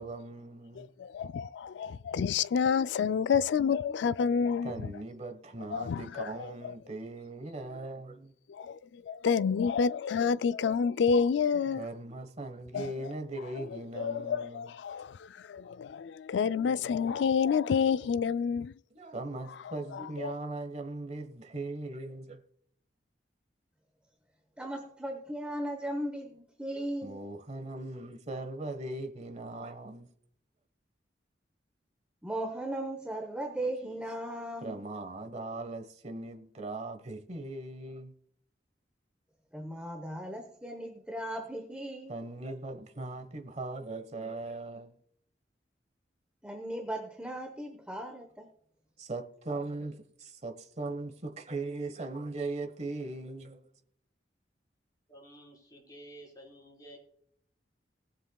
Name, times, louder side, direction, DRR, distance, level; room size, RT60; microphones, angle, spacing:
voice 1, 0.0-0.9 4.6-8.3 11.8-14.7 18.9-22.4 27.0-30.1 33.6-33.7 34.6-38.1 42.1-45.0 49.0-53.7, right 2 dB, 40° right, 1.2 m, -39 dB
voice 2, 0.8-4.7 5.7-6.3 6.6-6.7 8.5-11.9 12.7-12.9 14.0-18.7 19.9-20.4, left 6 dB, 85° left, 0.3 m, -29 dB
voice 3, 24.6-27.2 32.2-34.8 39.5-42.1 46.4-48.5, right 1 dB, 5° right, 1.0 m, -37 dB
voice 4, 55.1-57.0, right 1 dB, 20° left, 4.5 m, -51 dB
20.0 x 7.4 x 2.3 m
head